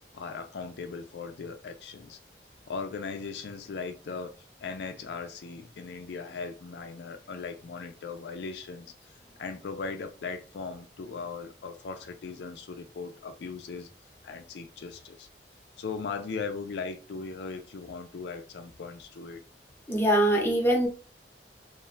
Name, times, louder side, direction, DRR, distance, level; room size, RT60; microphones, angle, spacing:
voice 1, 0.1-2.2 2.7-4.3 4.6-8.9 9.4-13.9 14.2-15.3 15.8-19.4, left 4 dB, 70° left, 0.4 m, -38 dB
voice 2, 19.9-20.9, right 1 dB, 15° left, 0.7 m, -23 dB
2.5 x 2.3 x 3.1 m
head